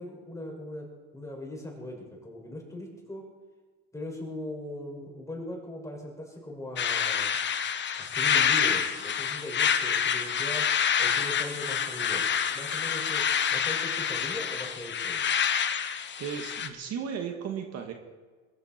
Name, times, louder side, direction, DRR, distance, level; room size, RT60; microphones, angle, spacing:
voice 1, 0.0-3.2 3.9-7.4 8.0-10.7 11.0-13.2 13.5-15.2, left 1 dB, 10° left, -1 dB, 6.0 m, -39 dB
sound 1, 6.8-16.7, left 8 dB, 35° left, 1.2 m, -27 dB
voice 2, 15.7-17.9, right 7 dB, 55° right, 3 dB, 2.0 m, -36 dB
21.5 x 15.0 x 4.5 m, 1.4 s
cardioid pair, 120°, 31 cm